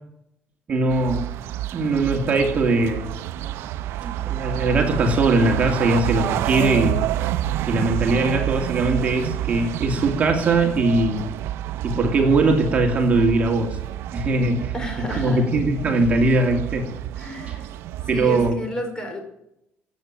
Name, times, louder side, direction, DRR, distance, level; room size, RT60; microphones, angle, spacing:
voice 1, 0.7-1.3 1.7-3.1 3.4-3.6 4.0-7.0 7.7-11.2 11.8-13.8 14.1-14.7 15.1-16.9 17.5-17.6 18.1-18.6, right 2 dB, 35° right, 3 dB, 2.6 m, -21 dB
sound 1, 0.9-18.5, right 13 dB, 85° right, 0.6 m, -28 dB
voice 2, 14.7-15.4 17.2-17.7 18.1-19.2, equal, 20° left, 5 dB, 4.7 m, -31 dB
16.0 x 9.0 x 9.2 m, 0.79 s
cardioid pair, 135°, 4 cm